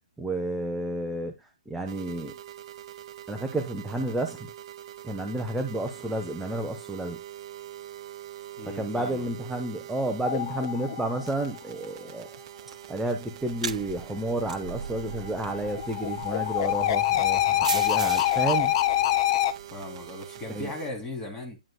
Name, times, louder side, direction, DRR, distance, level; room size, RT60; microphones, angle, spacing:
voice 1, 0.2-2.3 3.3-4.5 5.0-7.2 8.7-12.3 12.9-18.7 20.5-20.7, right 1 dB, 5° right, 0.9 m, -31 dB
sound 1, 1.9-20.9, right 12 dB, 40° right, 0.9 m, -44 dB
voice 2, 8.6-9.3 19.7-21.6, left 2 dB, 15° left, 3.2 m, -38 dB
sound 2, 10.2-11.6 15.1-19.5, left 13 dB, 40° left, 0.6 m, -25 dB
sound 3, 13.4-19.8, right 6 dB, 65° right, 1.0 m, -38 dB
9.8 x 7.4 x 2.3 m
figure-of-eight pair, 130°, 4 cm